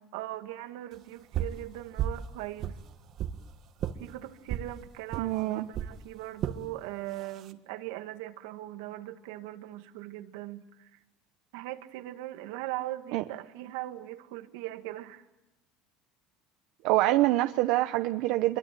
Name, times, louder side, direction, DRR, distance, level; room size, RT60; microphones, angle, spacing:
voice 1, 0.1-2.8 4.0-10.9 11.5-15.3, right 15 dB, 85° right, 7 dB, 2.0 m, -40 dB
sound 1, 1.3-1.6 2.0-2.3 2.6-3.4 3.8-4.0 4.5-4.7 5.1-5.3 5.7-5.9 6.4-6.6 7.2-7.5, right 10 dB, 45° right, 1.5 m, -32 dB
voice 2, 5.2-5.7 13.1-13.2 16.8-18.6, right 17 dB, 65° right, 8 dB, 0.9 m, -25 dB
26.5 x 22.5 x 9.2 m, 0.97 s
cardioid pair, 150°, 0 cm